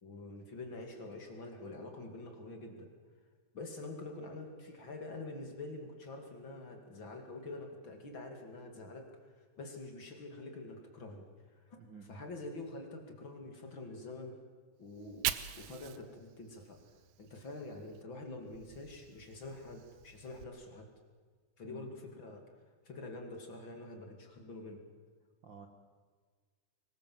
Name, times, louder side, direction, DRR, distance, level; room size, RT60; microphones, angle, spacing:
voice 1, 0.0-2.9 3.5-11.8 12.1-14.4 14.8-15.3 15.6-16.8 17.2-20.9 21.6-22.4 22.8-24.8, left 2 dB, 40° left, 3 dB, 2.9 m, -46 dB
voice 2, 11.8-12.1 21.6-21.9 25.4-25.7, right 5 dB, 50° right, 4 dB, 1.6 m, -51 dB
Fire, 14.9-18.0 18.4-20.4, right 12 dB, 75° right, 2.1 m, -43 dB
23.5 x 19.5 x 7.7 m, 1.6 s
omnidirectional pair, 3.7 m